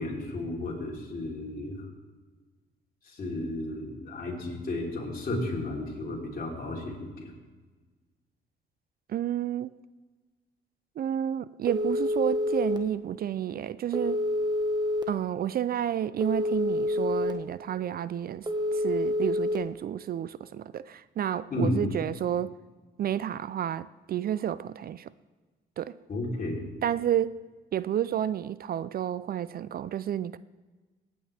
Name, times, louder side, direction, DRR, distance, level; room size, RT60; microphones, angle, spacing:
voice 1, 0.0-1.8 3.1-7.3 21.5-22.0 26.1-26.7, left 1 dB, 45° left, 3.5 m, -33 dB
voice 2, 9.1-9.7 11.0-14.2 15.1-22.6 23.0-25.1 25.8-26.0 26.8-27.4 27.7-30.4, right 10 dB, 50° right, 0.4 m, -30 dB
Telephone, 11.7-12.8 13.9-15.0 16.2-17.3 18.5-19.6, left 1 dB, 20° right, 1.3 m, -27 dB
18.0 x 9.3 x 3.4 m
cardioid pair, 90°, 20 cm